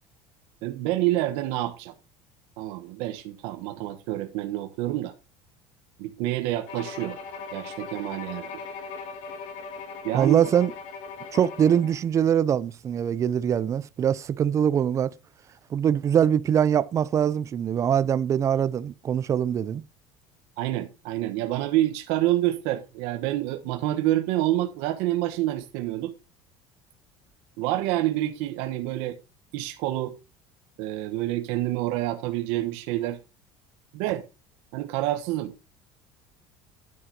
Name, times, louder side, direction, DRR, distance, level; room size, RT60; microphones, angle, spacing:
voice 1, 0.6-1.9 2.6-5.1 6.0-7.2 7.5-8.5 10.0-10.4 20.6-26.1 27.6-29.2 29.5-30.2 30.8-33.2 33.9-34.2 34.7-35.5, right 15 dB, 75° right, 1.3 m, -27 dB
Bowed string instrument, 6.7-12.0, left 5 dB, 65° left, 2.3 m, -39 dB
voice 2, 10.1-10.7 11.3-15.1 15.7-19.8, right 9 dB, 30° right, 0.6 m, -23 dB
11.0 x 9.7 x 2.9 m
cardioid pair, 155°, 11 cm